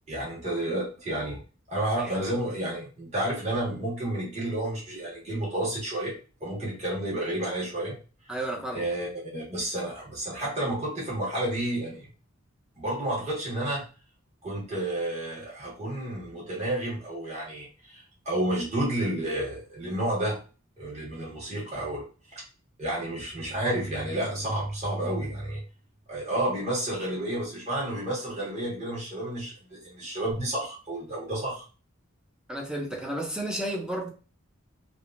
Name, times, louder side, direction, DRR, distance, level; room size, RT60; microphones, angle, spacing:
voice 1, 0.1-1.4 1.7-6.1 6.4-8.0 8.7-12.1 12.8-13.9 14.4-20.4 20.8-22.0 22.3-22.4 22.8-25.6 26.1-31.6, right 1 dB, 35° right, 1.4 m, -31 dB
voice 2, 8.3-8.9 32.5-34.1, right 1 dB, 5° right, 0.5 m, -32 dB
3.4 x 2.4 x 2.4 m
head